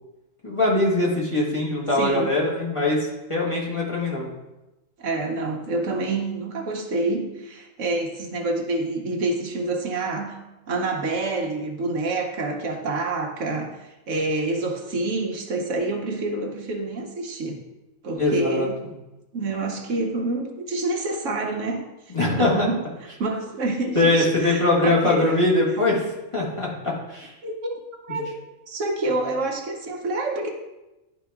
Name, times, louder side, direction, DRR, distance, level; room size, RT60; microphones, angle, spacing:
voice 1, 0.4-4.3 18.2-18.6 22.1-22.7 23.9-26.0 26.3-27.3, left 2 dB, 25° left, -5 dB, 1.7 m, -22 dB
voice 2, 1.9-2.4 5.0-10.4 10.7-17.6 18.0-18.8 19.3-21.9 22.4-22.8 23.2-25.3 27.4-27.8 28.1-28.3 28.7-30.5, right 2 dB, 70° right, 2 dB, 1.2 m, -27 dB
11.0 x 4.1 x 3.5 m, 1.0 s
omnidirectional pair, 1.4 m